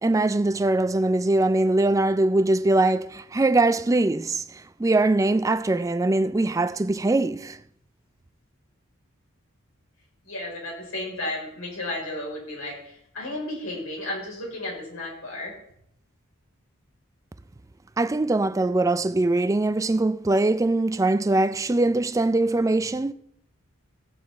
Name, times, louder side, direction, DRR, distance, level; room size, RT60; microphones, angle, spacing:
voice 1, 0.0-7.6 18.0-23.1, right 2 dB, 15° right, 0.3 m, -22 dB
voice 2, 10.2-15.5, left 1 dB, 80° left, 5.0 m, -33 dB
15.5 x 8.1 x 4.2 m
head